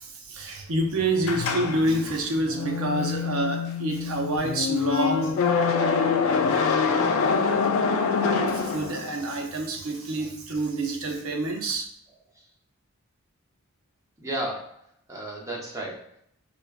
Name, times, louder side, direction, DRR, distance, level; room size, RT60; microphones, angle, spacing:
voice 1, 0.0-5.5 8.5-11.9, right 1 dB, 70° right, 2 dB, 0.6 m, -27 dB
sound 1, 1.2-9.3, left 5 dB, 65° left, 0.3 m, -25 dB
voice 2, 14.2-14.8 15.1-16.2, right 1 dB, 15° right, -2 dB, 0.7 m, -33 dB
4.9 x 2.2 x 2.3 m, 0.68 s
head